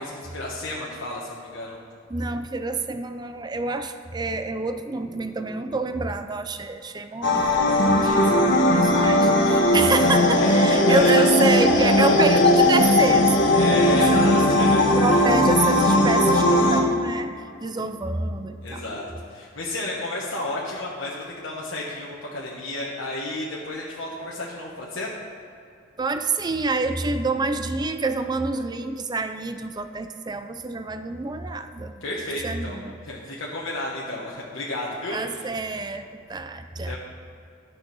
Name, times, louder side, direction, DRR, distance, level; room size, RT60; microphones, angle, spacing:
voice 1, 0.0-1.8 8.0-8.4 10.4-11.2 12.0-12.1 13.5-15.2 15.9-16.0 18.6-25.1 32.0-32.8 33.0-35.5 36.8-37.0, left 2 dB, 85° left, -5 dB, 1.4 m, -32 dB
voice 2, 2.1-14.3 15.0-19.2 26.0-32.0 32.4-32.9 35.1-37.0, right 3 dB, 20° right, 9 dB, 0.5 m, -27 dB
sound 1, 7.2-16.8, left 1 dB, 65° left, 1.2 m, -18 dB
11.5 x 6.4 x 6.1 m, 2.6 s
head